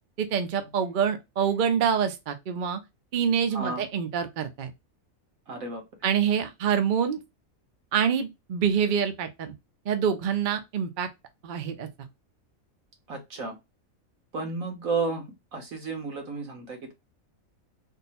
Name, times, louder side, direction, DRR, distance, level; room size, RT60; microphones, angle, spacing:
voice 1, 0.2-2.8 3.1-4.7 6.0-7.2 7.9-9.5 9.9-11.1 11.4-11.9, right 7 dB, 50° right, 0.6 m, -26 dB
voice 2, 3.5-3.9 5.5-5.8 13.1-13.6 14.3-16.9, right 4 dB, 75° right, 1.7 m, -32 dB
3.6 x 2.2 x 4.1 m
omnidirectional pair, 1.4 m